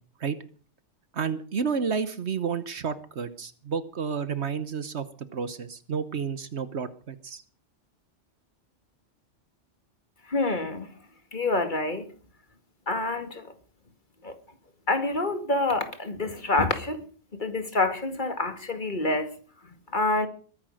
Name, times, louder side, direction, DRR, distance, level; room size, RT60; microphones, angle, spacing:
voice 1, 1.1-5.1 5.3-7.4, right 6 dB, 65° right, 1.3 m, -30 dB
voice 2, 10.3-10.9 11.3-12.1 12.9-13.4 14.2-14.3 14.9-17.0 17.3-19.3 19.9-20.3, left 2 dB, 40° left, 2.4 m, -27 dB
21.5 x 9.9 x 6.5 m
omnidirectional pair, 1.2 m